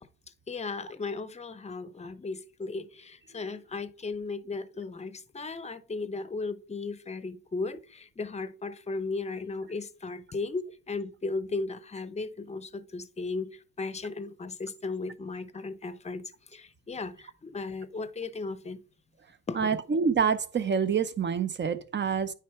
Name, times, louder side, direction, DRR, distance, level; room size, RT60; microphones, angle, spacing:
voice 1, 0.5-18.8 19.5-19.8, left 3 dB, 20° left, 0.7 m, -36 dB
voice 2, 19.6-22.3, right 6 dB, 35° right, 0.8 m, -27 dB
9.4 x 3.4 x 4.7 m
cardioid pair, 90°, 30 cm